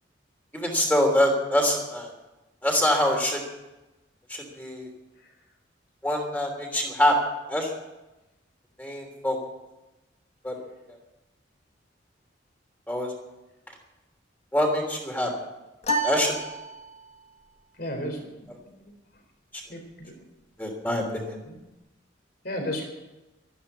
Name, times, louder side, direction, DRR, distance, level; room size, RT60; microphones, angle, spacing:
voice 1, 0.5-2.1 2.6-3.4 4.3-4.9 6.0-7.2 7.5-7.7 8.8-9.4 10.4-10.5 12.9-13.1 14.5-15.3 16.0-16.3 19.5-19.6 20.6-21.4, left 1 dB, 10° left, 1 dB, 3.1 m, -25 dB
sound 1, 15.8-17.3, right 1 dB, 35° left, 1.6 m, -30 dB
voice 2, 17.8-18.9 19.7-20.1 21.4-21.6 22.4-22.9, left 1 dB, 50° left, 3 dB, 4.0 m, -34 dB
13.0 x 12.5 x 8.6 m, 1.0 s
head